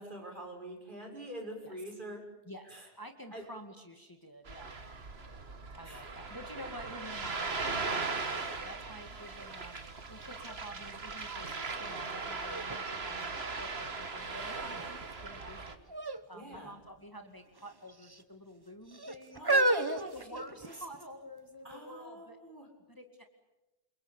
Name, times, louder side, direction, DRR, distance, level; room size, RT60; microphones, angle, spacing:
voice 1, 0.0-2.3 2.6-2.9 3.3-3.5 5.8-6.1 16.3-16.8 19.3-20.8 21.6-22.7, right 1 dB, 50° right, 1 dB, 6.6 m, -45 dB
voice 2, 2.5-4.7 5.7-9.7 10.1-15.9 16.3-19.5 19.9-22.4 22.9-23.0, equal, 20° left, 5 dB, 2.2 m, -49 dB
Ocean, 4.5-15.8, right 4 dB, 70° right, 2.0 m, -39 dB
sound 1, 11.9-12.0 12.4-14.0 14.5-15.0 15.9-16.2 16.5-16.7 17.6-18.2 18.9-21.0 21.7-21.8, right 2 dB, 20° right, 1.2 m, -32 dB
29.0 x 23.5 x 7.2 m, 0.98 s
omnidirectional pair, 1.1 m